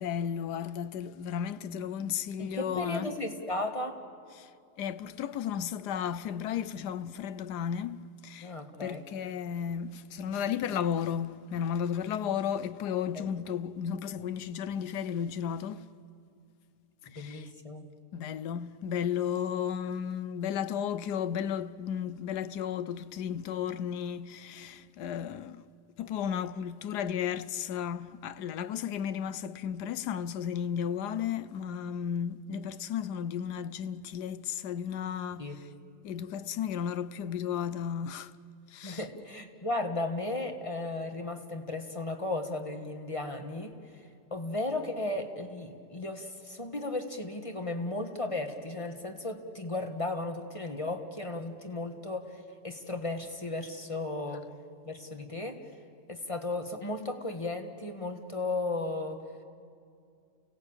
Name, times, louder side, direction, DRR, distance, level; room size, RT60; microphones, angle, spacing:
voice 1, 0.0-3.1 4.3-4.5 4.8-8.0 8.2-8.5 8.8-15.8 17.1-17.5 18.1-25.6 26.0-35.7 36.0-38.3 38.7-39.0, left 8 dB, 75° left, 1.3 m, -34 dB
voice 2, 2.4-4.0 8.4-9.0 13.1-13.3 17.1-17.9 35.4-35.6 38.8-43.7 44.3-54.5 54.8-55.6 56.1-59.2, left 2 dB, 20° left, 1.4 m, -35 dB
29.5 x 17.0 x 8.8 m
omnidirectional pair, 1.8 m